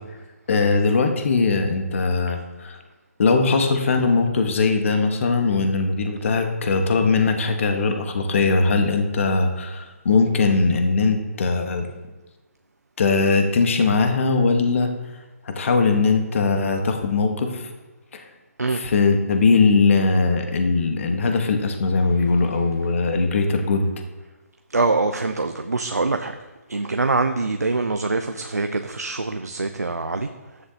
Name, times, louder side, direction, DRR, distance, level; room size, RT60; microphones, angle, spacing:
voice 1, 0.5-2.8 3.2-11.9 13.0-14.9 15.5-17.7 18.1-18.2 18.7-23.9, left 4 dB, 55° left, 5 dB, 1.3 m, -20 dB
voice 2, 24.7-26.3 26.7-30.3, right 3 dB, 90° right, 7 dB, 0.6 m, -24 dB
13.0 x 9.5 x 2.8 m, 1.2 s
figure-of-eight pair, 145°, 9 cm